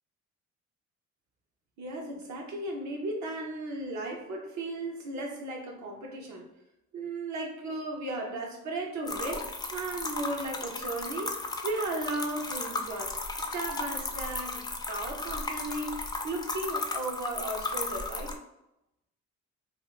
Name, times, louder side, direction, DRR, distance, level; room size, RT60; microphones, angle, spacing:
voice 1, 1.8-6.5 6.9-11.4 11.6-14.6 14.9-18.3, right 2 dB, 70° right, 1 dB, 0.8 m, -35 dB
sound 1, 9.1-18.3, left 3 dB, 15° left, 0.3 m, -35 dB
2.5 x 2.4 x 3.0 m, 0.87 s
cardioid pair, 90°, 30 cm